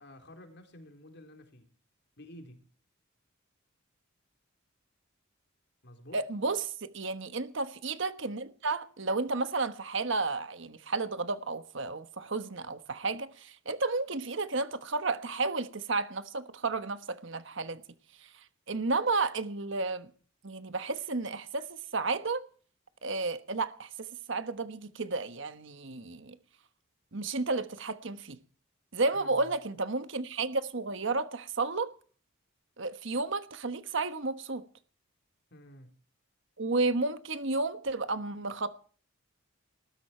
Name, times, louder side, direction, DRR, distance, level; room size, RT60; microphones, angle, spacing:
voice 1, 0.0-1.7 2.2-2.6 5.8-6.2 29.1-29.5 35.5-35.9, left 1 dB, 55° left, 4.0 m, -51 dB
voice 2, 6.1-17.8 18.2-18.3 18.7-20.1 20.4-22.4 23.0-26.3 27.1-28.4 28.9-31.9 32.8-34.6 36.6-38.8, right 3 dB, 65° right, 1.3 m, -32 dB
20.0 x 13.5 x 4.5 m
head